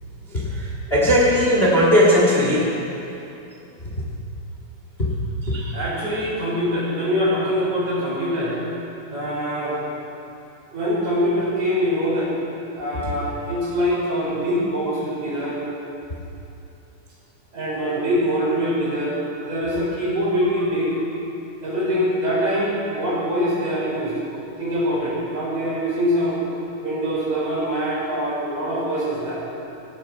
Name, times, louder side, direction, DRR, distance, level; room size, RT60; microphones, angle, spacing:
voice 1, 0.3-2.7 5.4-5.7, equal, 25° left, -4 dB, 1.7 m, -18 dB
voice 2, 5.7-8.6 9.1-9.8 10.7-12.3 12.8-15.6 17.5-19.2 19.4-20.9 21.6-24.2 24.6-26.4 26.8-29.4, equal, 55° right, -7 dB, 6.3 m, -23 dB
17.5 x 16.5 x 4.6 m, 2.9 s
omnidirectional pair, 3.9 m